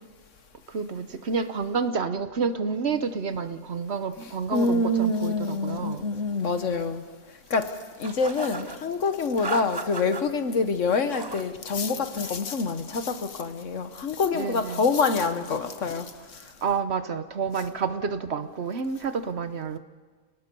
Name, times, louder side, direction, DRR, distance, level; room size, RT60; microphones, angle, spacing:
voice 1, 0.7-6.0 14.3-14.9 16.6-19.8, right 5 dB, 55° right, 1.1 m, -29 dB
voice 2, 4.2-7.0 7.5-16.4, left 3 dB, 65° left, 1.5 m, -26 dB
sound 1, 8.0-8.8 9.4-10.2 10.9-11.5 11.8-12.4, right 3 dB, 25° right, 0.6 m, -36 dB
29.5 x 19.0 x 5.4 m
omnidirectional pair, 1.4 m